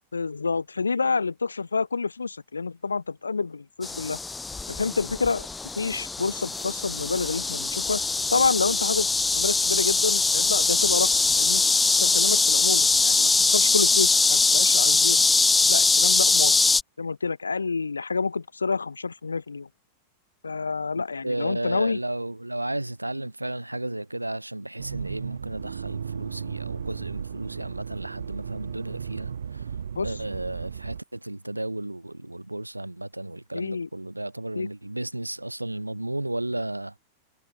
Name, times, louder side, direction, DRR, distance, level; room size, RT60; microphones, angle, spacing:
voice 1, 0.1-4.2 4.7-5.5 5.8-8.0 8.3-9.1 9.3-11.6 11.9-15.2 15.7-16.5 17.0-19.7 20.4-22.0 30.0-30.1 33.5-33.9 34.6-34.7, left 4 dB, 75° left, 4.0 m, -28 dB
sound 1, 3.8-16.8, left 3 dB, 10° left, 0.4 m, -22 dB
voice 2, 21.2-29.7 30.0-36.9, right 1 dB, 85° right, 5.6 m, -33 dB
Accelerating revving vroom, 24.8-31.0, right 7 dB, 70° right, 2.1 m, -35 dB
figure-of-eight pair, 90°, 0 cm